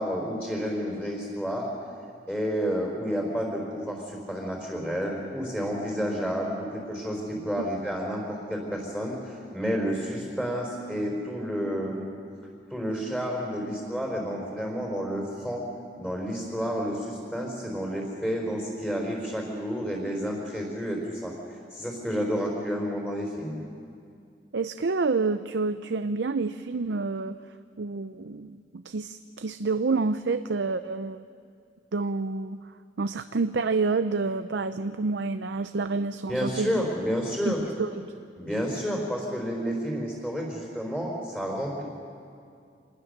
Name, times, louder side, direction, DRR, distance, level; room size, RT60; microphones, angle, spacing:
voice 1, 0.0-1.7 2.3-12.1 12.7-15.6 16.0-21.3 21.7-23.6 36.3-37.6 38.4-41.8, equal, 5° left, -1 dB, 4.1 m, -30 dB
voice 2, 24.5-27.4 27.8-31.2 31.9-32.6 33.0-36.7 37.5-38.0, right 4 dB, 90° right, 10 dB, 0.6 m, -28 dB
26.5 x 19.5 x 6.7 m, 2.4 s
head